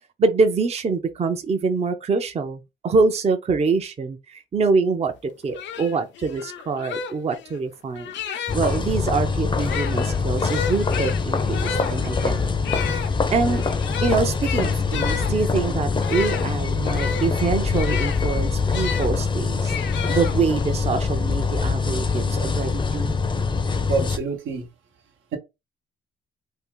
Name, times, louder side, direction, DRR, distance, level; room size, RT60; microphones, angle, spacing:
voice 1, 0.2-5.1 5.4-8.1 8.5-12.4 12.8-13.6 14.0-19.7 20.1-23.1, right 4 dB, 30° right, 0.6 m, -25 dB
sound 1, 5.2-5.3 5.5-8.8 9.5-19.1 19.7-20.8, left 7 dB, 65° left, 0.5 m, -32 dB
sound 2, 8.5-24.2, left 4 dB, 25° left, 0.5 m, -24 dB
voice 2, 23.9-24.7, right 4 dB, 80° right, 1.0 m, -26 dB
2.7 x 2.5 x 3.7 m
cardioid pair, 90°, 20 cm